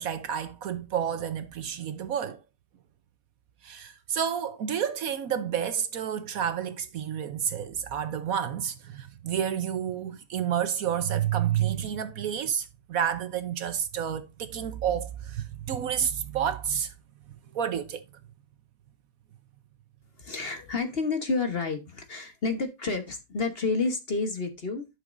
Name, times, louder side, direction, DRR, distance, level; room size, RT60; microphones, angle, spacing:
voice 1, 0.0-2.4 3.6-16.9 17.5-18.0, right 9 dB, 65° right, 1.1 m, -30 dB
voice 2, 20.2-24.9, left 4 dB, 40° left, 1.1 m, -30 dB
11.0 x 6.2 x 2.5 m
omnidirectional pair, 1.8 m